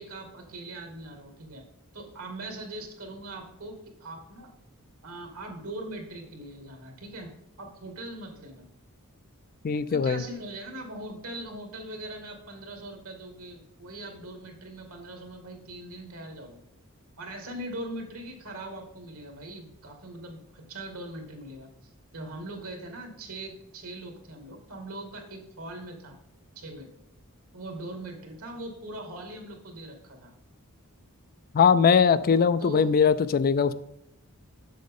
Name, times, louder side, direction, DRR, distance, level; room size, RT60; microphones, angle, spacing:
voice 1, 0.0-1.7 1.9-4.5 5.0-7.3 7.6-8.7 9.9-16.6 17.2-26.1 26.6-26.9 27.5-30.3 32.6-32.9, right 1 dB, 75° right, 3 dB, 2.3 m, -41 dB
voice 2, 9.6-10.2 31.5-33.7, left 6 dB, 40° left, 14 dB, 0.4 m, -21 dB
7.7 x 7.3 x 3.7 m, 0.83 s
head